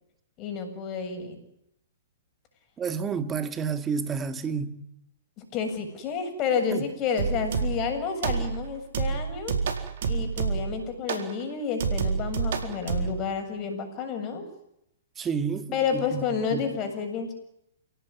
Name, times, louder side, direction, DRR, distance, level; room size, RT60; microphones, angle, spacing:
voice 1, 0.4-1.4 5.4-9.6 10.1-14.4 15.7-17.3, left 6 dB, 35° left, 7.5 m, -30 dB
voice 2, 2.8-4.8 6.7-6.8 15.2-16.6, right 6 dB, 20° right, 2.1 m, -30 dB
sound 1, 7.2-7.9 8.2-8.6 8.9-10.8 11.1-11.3 11.8-13.2, right 6 dB, 60° right, 4.2 m, -28 dB
29.0 x 17.5 x 9.9 m
hypercardioid pair, 120°, 0 cm